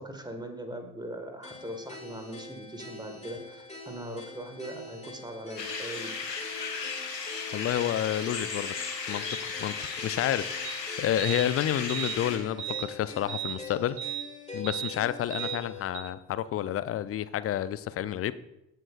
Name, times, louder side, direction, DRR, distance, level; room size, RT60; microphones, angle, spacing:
voice 1, 0.0-6.4, right 1 dB, 10° right, 5 dB, 1.7 m, -40 dB
sound 1, 1.4-15.9, left 4 dB, 15° left, 2.5 m, -44 dB
sound 2, 5.6-12.4, left 5 dB, 85° left, 1.0 m, -35 dB
voice 2, 7.5-8.7 9.1-14.0 14.5-18.3, left 11 dB, 30° left, 15 dB, 0.5 m, -30 dB
sound 3, 10.6-10.7 11.2-11.5 11.9-12.2 12.6-12.9 13.3-13.6 14.0-14.3 14.6-14.9 15.3-15.6 15.9-16.0, right 13 dB, 55° right, 2.1 m, -35 dB
15.5 x 7.7 x 2.5 m, 0.86 s
figure-of-eight pair, 50°, 48 cm